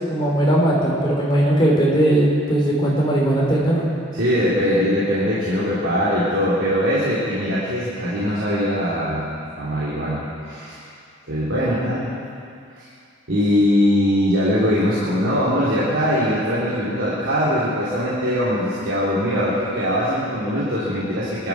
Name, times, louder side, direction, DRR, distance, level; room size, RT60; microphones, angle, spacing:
voice 1, 0.1-3.9, right 1 dB, 25° left, -5 dB, 3.6 m, -18 dB
voice 2, 4.1-9.2 9.6-10.8 11.3-12.1 12.8-12.9 13.3-21.5, equal, 65° right, -9 dB, 3.2 m, -21 dB
24.0 x 12.0 x 4.8 m, 2.4 s
head